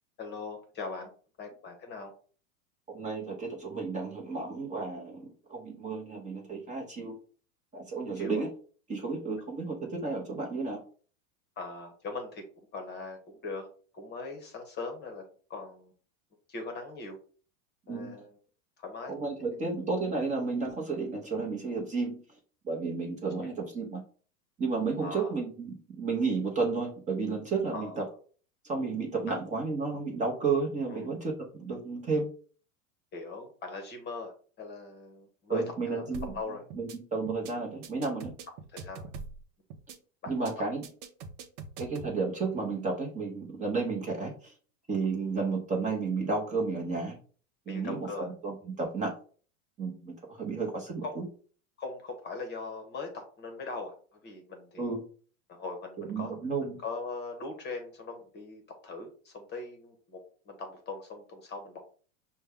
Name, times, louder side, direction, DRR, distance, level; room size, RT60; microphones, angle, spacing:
voice 1, 0.2-1.1 1.4-2.1 8.1-8.4 11.6-12.4 12.7-13.7 13.9-15.2 15.5-15.9 16.5-17.2 17.9-18.3 18.8-19.1 25.0-25.3 27.7-28.0 29.3-29.4 30.9-31.1 33.1-36.1 36.3-36.6 38.7-39.1 40.2-40.5 47.7-48.3 51.0-51.2 51.8-54.9 55.5-61.8, left 3 dB, 25° left, 4 dB, 0.9 m, -40 dB
voice 2, 2.9-7.2 7.7-8.5 8.9-10.8 17.9-18.2 19.1-22.2 22.6-24.0 24.6-28.0 28.6-31.3 31.6-32.3 35.5-36.3 36.8-38.3 40.3-40.8 41.8-44.5 44.9-47.2 47.7-48.1 48.4-49.1 49.8-51.2 54.8-55.0 56.0-56.8, right 4 dB, 20° right, -1 dB, 0.9 m, -32 dB
sound 1, 36.1-36.4 36.7-37.0 37.3-37.5 37.8-39.4 39.7-40.0 40.3-40.5 40.8-42.1, right 4 dB, 55° right, 0.8 m, -43 dB
5.2 x 2.3 x 3.5 m, 0.42 s
supercardioid pair, 130°, 42 cm